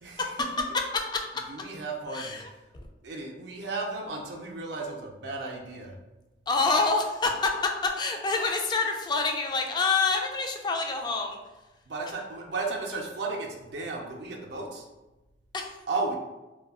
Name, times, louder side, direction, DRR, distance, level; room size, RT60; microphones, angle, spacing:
voice 1, 0.0-0.7 1.4-2.4 3.0-6.0 11.9-14.9 15.9-16.2, right 3 dB, 65° right, 0 dB, 0.4 m, -34 dB
voice 2, 2.1-2.5 2.7-2.8 6.5-11.4 15.5-15.8, left 3 dB, 25° left, 3 dB, 0.3 m, -27 dB
2.3 x 2.1 x 3.5 m, 1.1 s
head